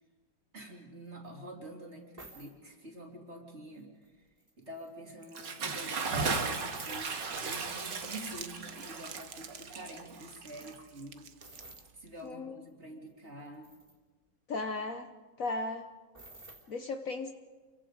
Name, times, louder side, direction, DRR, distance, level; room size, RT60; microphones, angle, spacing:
voice 1, 0.5-4.3 4.6-11.3 11.5-13.8, right 1 dB, 35° right, 1 dB, 3.3 m, -47 dB
sound 1, 1.2-1.3 2.2-2.5 3.7-4.1 4.4-5.3 6.7-7.2 9.5-9.6 9.8-10.2 10.6-10.8 11.4-11.9 12.7-12.8 13.1-13.9 16.1-16.7, right 2 dB, 20° right, 3.4 m, -52 dB
Bathtub (filling or washing) / Splash splatter, 5.2-11.2, right 4 dB, 75° right, 2.4 m, -36 dB
Crumpling crinkling, 7.0-12.3, right 7 dB, 50° right, 1.2 m, -51 dB
voice 2, 14.5-15.1 15.4-15.9 16.7-17.3, left 3 dB, 55° left, 6 dB, 1.3 m, -35 dB
28.5 x 23.5 x 5.0 m, 1.4 s
omnidirectional pair, 2.0 m